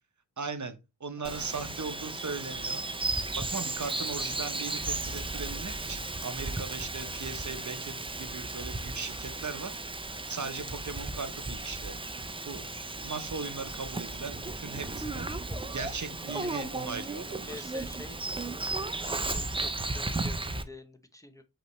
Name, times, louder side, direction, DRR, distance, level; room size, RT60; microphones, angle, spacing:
voice 1, 0.4-2.8 3.4-9.8 10.3-12.0 12.5-12.7 13.0-15.3 15.7-17.7, right 4 dB, 40° right, 0.7 m, -38 dB
voice 2, 1.2-1.8 10.1-10.2 15.5-15.6 16.3-16.5 17.4-18.6 19.0-21.4, left 1 dB, 10° left, 0.8 m, -48 dB
Bird vocalization bird call bird song, 1.2-20.6, right 2 dB, 15° right, 0.4 m, -35 dB
5.3 x 3.1 x 3.0 m
wide cardioid pair, 60°, 43 cm